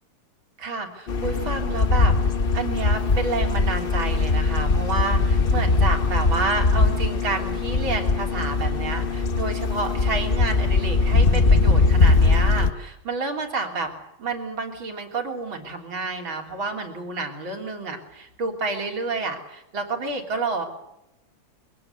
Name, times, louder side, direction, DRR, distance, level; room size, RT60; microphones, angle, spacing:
voice 1, 0.6-2.1 2.5-13.9 14.2-20.6, right 3 dB, 90° right, 3 dB, 4.1 m, -29 dB
sound 1, 1.1-12.7, left 3 dB, 40° left, 0.8 m, -21 dB
24.0 x 17.5 x 9.6 m, 0.88 s
omnidirectional pair, 2.1 m